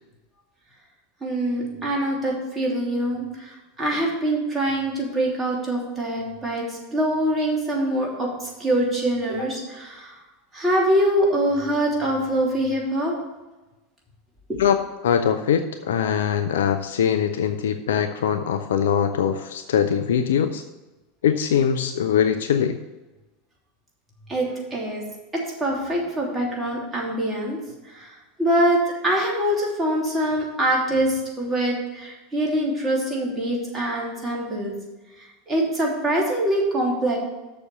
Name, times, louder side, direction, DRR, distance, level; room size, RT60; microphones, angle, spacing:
voice 1, 1.2-10.2 10.5-13.1 14.5-14.6 24.3-25.0 25.3-27.6 27.8-34.7 35.2-37.2, right 1 dB, 20° right, -2 dB, 3.1 m, -24 dB
voice 2, 15.0-20.6 21.2-22.8, left 8 dB, 70° left, 8 dB, 0.5 m, -22 dB
7.0 x 6.8 x 6.7 m, 1.1 s
figure-of-eight pair, 80°, 0 cm